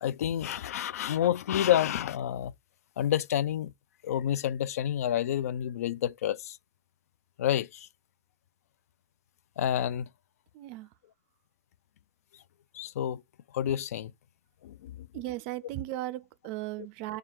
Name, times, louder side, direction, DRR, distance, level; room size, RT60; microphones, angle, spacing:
voice 1, 0.0-2.5 3.0-3.7 4.0-6.6 7.4-7.9 9.6-10.1 12.7-13.2 13.5-14.1 14.6-15.1, left 11 dB, 80° left, 0.3 m, -29 dB
voice 2, 10.5-10.9 15.1-17.2, right 15 dB, 55° right, 0.4 m, -36 dB
4.4 x 2.3 x 3.4 m
hypercardioid pair, 105°, 8 cm